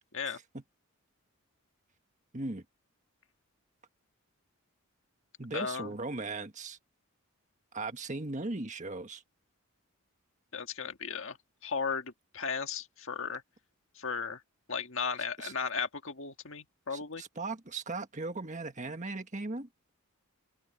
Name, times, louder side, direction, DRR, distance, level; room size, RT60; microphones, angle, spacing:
voice 1, 2.3-2.6 5.4-6.8 7.7-9.2 15.4-15.5 16.9-19.7, right 3 dB, 35° right, 1.5 m, -38 dB
voice 2, 5.5-5.9 10.5-11.4 11.6-13.4 13.9-14.4 14.7-17.2, left 5 dB, 60° left, 1.7 m, -35 dB
open air
head